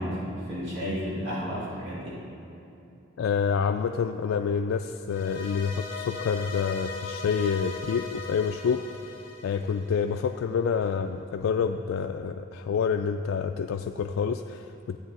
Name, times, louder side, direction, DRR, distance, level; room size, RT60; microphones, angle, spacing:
voice 1, 0.0-2.2, equal, 65° right, -7 dB, 2.7 m, -32 dB
voice 2, 3.2-9.0 9.4-15.0, left 6 dB, 80° left, 5 dB, 0.3 m, -28 dB
sound 1, 5.1-10.3, left 4 dB, 50° left, 2.1 m, -39 dB
13.0 x 8.6 x 3.8 m, 2.8 s
head